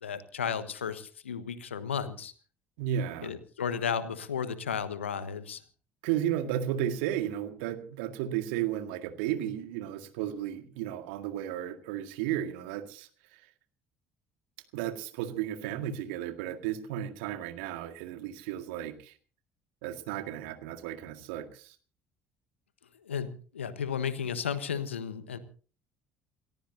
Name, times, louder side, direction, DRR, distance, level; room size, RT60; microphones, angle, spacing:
voice 1, 0.0-2.3 3.2-5.6 23.1-23.3 23.5-25.4, left 7 dB, 80° left, 13 dB, 1.3 m, -33 dB
voice 2, 2.8-3.4 6.0-13.4 14.7-19.1 19.8-21.8, right 11 dB, 70° right, 7 dB, 1.9 m, -34 dB
28.5 x 14.5 x 2.8 m, 0.40 s
figure-of-eight pair, 55°, 6 cm